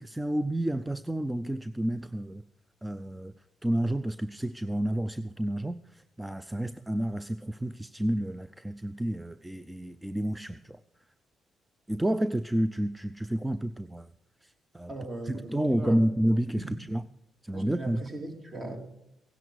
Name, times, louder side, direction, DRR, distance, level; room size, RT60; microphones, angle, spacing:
voice 1, 0.0-2.4 2.8-3.3 3.6-10.8 11.9-14.1 14.4-14.9 15.2-17.1 17.4-18.0, right 1 dB, 10° right, 0.5 m, -30 dB
voice 2, 14.9-16.0 16.6-16.8 17.5-18.8, right 2 dB, 35° right, 3.2 m, -39 dB
16.0 x 11.0 x 6.4 m
cardioid pair, 90°, 0 cm